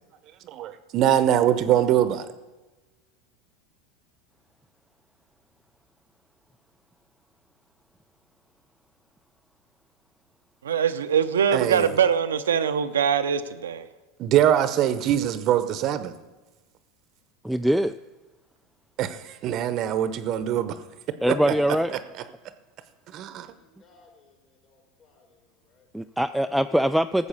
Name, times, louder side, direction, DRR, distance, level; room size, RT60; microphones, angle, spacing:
voice 1, 0.5-2.3 11.5-11.9 14.2-16.1 19.0-20.8 21.3-21.5 21.9-22.0 23.1-23.5, right 11 dB, 50° right, 0.8 m, -23 dB
voice 2, 10.6-13.9, right 7 dB, 85° right, 0.6 m, -23 dB
voice 3, 17.4-17.9 21.2-22.0 25.9-27.3, equal, ahead, 0.3 m, -23 dB
voice 4, 23.4-25.9, left 3 dB, 45° left, 4.1 m, -61 dB
13.5 x 7.1 x 6.8 m
hypercardioid pair, 90°, 0 cm